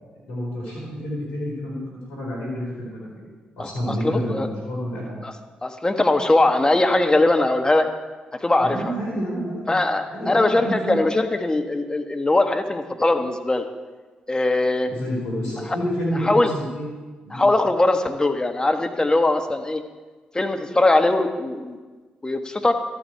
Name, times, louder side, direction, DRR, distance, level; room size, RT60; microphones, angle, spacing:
voice 1, 0.0-3.2 3.6-5.2 8.6-9.8 10.1-10.9 14.9-16.8 17.2-17.4, equal, 85° left, -5 dB, 4.8 m, -29 dB
voice 2, 3.6-4.5 5.2-5.3 5.6-7.9 8.3-8.9 9.7-13.6 14.3-14.9 16.2-16.5 17.3-19.8 20.3-21.8 22.2-22.7, left 2 dB, 20° left, 6 dB, 1.4 m, -21 dB
13.0 x 10.5 x 4.7 m, 1.3 s
hypercardioid pair, 45°, 4 cm